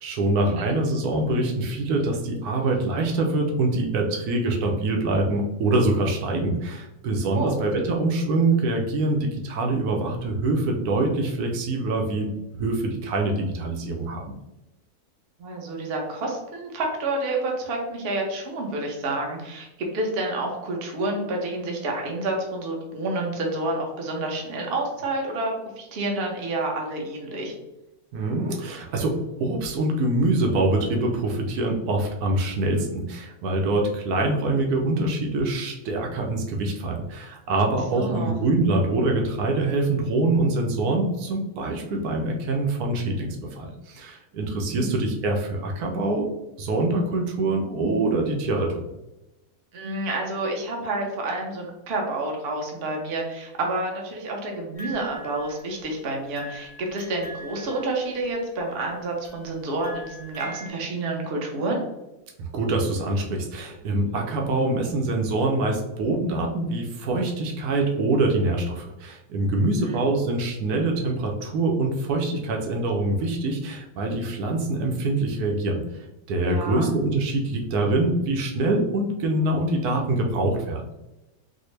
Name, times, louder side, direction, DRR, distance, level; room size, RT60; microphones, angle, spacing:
voice 1, 0.0-14.3 28.1-46.3 46.6-48.8 62.4-75.8 76.3-80.8, right 2 dB, 80° right, 1 dB, 1.2 m, -24 dB
voice 2, 7.2-7.5 15.4-27.5 37.9-38.5 44.7-44.9 49.7-61.8 69.9-70.0 76.5-76.9, right 2 dB, 50° right, 0 dB, 0.8 m, -29 dB
sound 1, 54.7-55.9 56.3-58.6 59.2-60.7, equal, 25° right, 1.2 m, -42 dB
4.1 x 2.0 x 3.2 m, 0.96 s
omnidirectional pair, 1.6 m